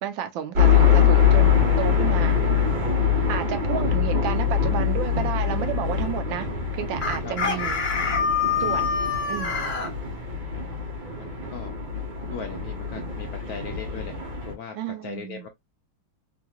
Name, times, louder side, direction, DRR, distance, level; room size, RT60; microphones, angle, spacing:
voice 1, 0.0-2.4 3.3-6.5 6.7-7.8 8.6-8.9 9.3-9.7 14.7-15.5, right 10 dB, 80° right, 1.4 m, -31 dB
sound 1, 0.6-14.5, left 7 dB, 60° right, 2.0 m, -23 dB
Chicken rooster, 7.0-9.9, left 6 dB, 40° left, 1.1 m, -25 dB
voice 2, 8.5-8.8 11.1-11.8 12.3-14.2 14.5-15.5, left 7 dB, 75° left, 0.8 m, -39 dB
4.0 x 2.7 x 2.2 m
omnidirectional pair, 2.1 m